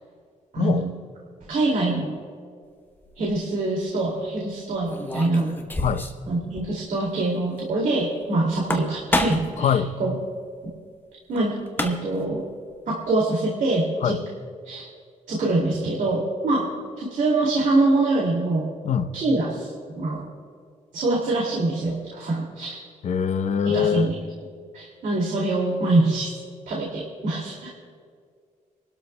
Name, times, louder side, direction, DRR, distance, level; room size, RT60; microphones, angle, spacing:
voice 1, 0.5-0.9 1.5-2.1 3.2-5.5 6.2-10.1 11.3-12.4 12.9-14.2 14.6-14.9 15.3-16.7 17.0-18.7 19.1-20.3 20.9-22.8 23.7-24.3 24.7-26.3 26.7-27.7, right 2 dB, 75° right, -3 dB, 2.5 m, -24 dB
sound 1, 3.0-3.4 4.9-6.3 6.6-6.7 7.0-7.1 8.5-9.6 11.4-11.5 11.7-12.2, left 1 dB, 15° left, 1.0 m, -28 dB
voice 2, 9.6-9.9 14.0-14.2 18.8-19.1 23.0-24.1, left 7 dB, 60° left, 9 dB, 0.8 m, -23 dB
30.0 x 12.5 x 2.2 m, 2.1 s
cardioid pair, 130°, 13 cm